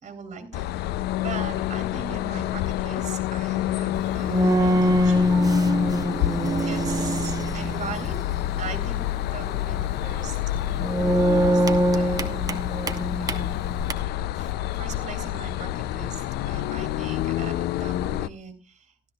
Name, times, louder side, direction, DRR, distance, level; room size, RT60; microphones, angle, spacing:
voice 1, 0.0-5.3 6.7-8.2 8.6-10.4 11.2-11.7 12.0-12.4 13.2-13.5 14.3-18.9, right 5 dB, 45° right, 4 dB, 3.2 m, -40 dB
sound 1, 0.5-18.3, left 14 dB, 75° left, 0.5 m, -28 dB
sound 2, 4.0-13.9, equal, 20° right, 1.0 m, -24 dB
15.5 x 12.5 x 2.3 m, 0.34 s
cardioid pair, 110°, 17 cm